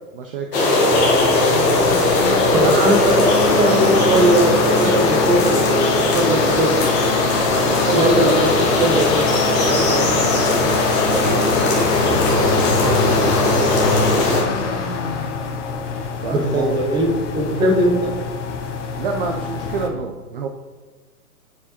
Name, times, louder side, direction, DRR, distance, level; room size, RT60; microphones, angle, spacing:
voice 1, 0.1-1.3 2.6-3.1 7.7-8.4 9.1-14.8 16.2-16.8 19.0-20.5, right 5 dB, 40° right, 3 dB, 0.4 m, -28 dB
sound 1, 0.5-14.4, left 2 dB, 20° left, 1.0 m, -19 dB
sound 2, 0.9-19.9, left 5 dB, 50° left, 0.9 m, -24 dB
voice 2, 2.5-6.8 7.9-8.5 8.8-9.3 16.3-17.1 17.3-18.1, right 1 dB, 10° right, -1 dB, 0.7 m, -19 dB
9.6 x 4.9 x 2.9 m, 1.4 s
hypercardioid pair, 125°, 47 cm